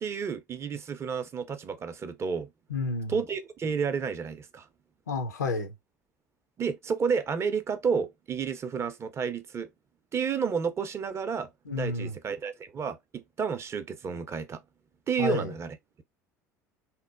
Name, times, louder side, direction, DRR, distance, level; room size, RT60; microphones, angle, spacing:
voice 1, 0.0-2.5 3.1-4.7 6.6-9.7 10.1-14.6 15.1-15.8, right 6 dB, 30° right, 0.4 m, -31 dB
voice 2, 2.7-3.1 5.1-5.7 11.7-12.2 15.2-15.5, left 3 dB, 80° left, 0.5 m, -30 dB
2.9 x 2.0 x 2.2 m
figure-of-eight pair, 70°, 9 cm